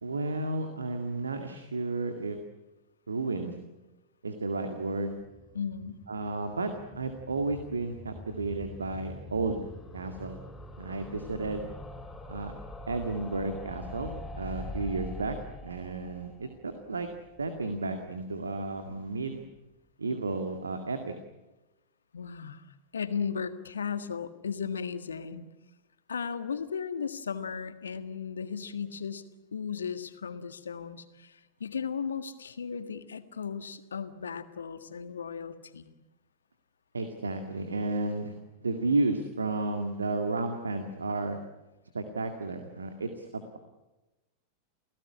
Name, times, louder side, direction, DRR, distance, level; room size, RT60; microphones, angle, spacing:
voice 1, 0.0-2.4 3.1-3.5 4.2-5.1 6.1-10.4 10.8-11.6 12.3-12.5 12.9-15.4 15.6-17.1 17.4-19.4 20.0-21.1 36.9-38.4 38.6-41.4 41.9-43.6, right 3 dB, 75° right, 6 dB, 2.1 m, -32 dB
sound 1, 5.1-18.0 18.3-18.4 18.6-18.7 18.9-19.0, left 2 dB, 10° left, 5.1 m, -44 dB
voice 2, 5.5-6.0 22.1-25.5 26.1-29.2 29.5-35.9, left 6 dB, 70° left, 10 dB, 1.7 m, -36 dB
29.5 x 17.5 x 9.9 m, 1.0 s
figure-of-eight pair, 90°, 0 cm